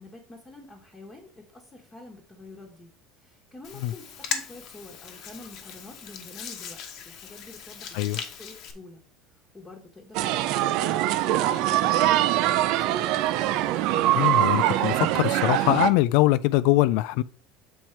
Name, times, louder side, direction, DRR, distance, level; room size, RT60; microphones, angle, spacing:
voice 1, 0.0-2.9 3.2-6.8 7.0-9.0 9.3-13.1, left 2 dB, 15° left, 1.3 m, -47 dB
Hands, 3.6-8.7, left 7 dB, 45° left, 1.1 m, -38 dB
sound 1, 10.1-15.9, right 13 dB, 60° right, 0.5 m, -23 dB
voice 2, 14.1-17.2, left 17 dB, 65° left, 0.3 m, -22 dB
7.2 x 4.5 x 4.4 m
cardioid pair, 160°, 0 cm